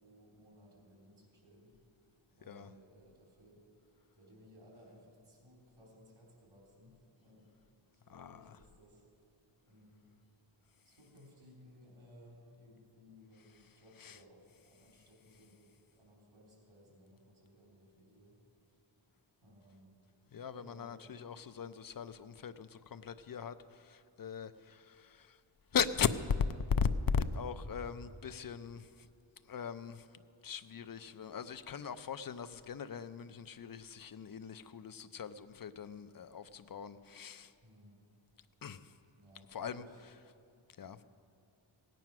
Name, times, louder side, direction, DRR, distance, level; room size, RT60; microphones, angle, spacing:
voice 1, 0.0-1.8 2.3-3.6 4.1-7.7 7.9-9.1 9.6-10.1 10.8-18.4 19.4-20.0 20.5-21.0 37.6-38.1 39.1-40.0 41.0-41.1, equal, 80° right, -3 dB, 3.7 m, -60 dB
voice 2, 8.1-8.6 14.0-14.2 20.3-25.4 25.7-26.1 26.4-29.1 29.4-37.5 38.6-39.0 39.5-39.9 40.8-41.0, left 6 dB, 45° left, 12 dB, 0.6 m, -38 dB
17.0 x 9.2 x 6.0 m, 2.4 s
wide cardioid pair, 75°, 48 cm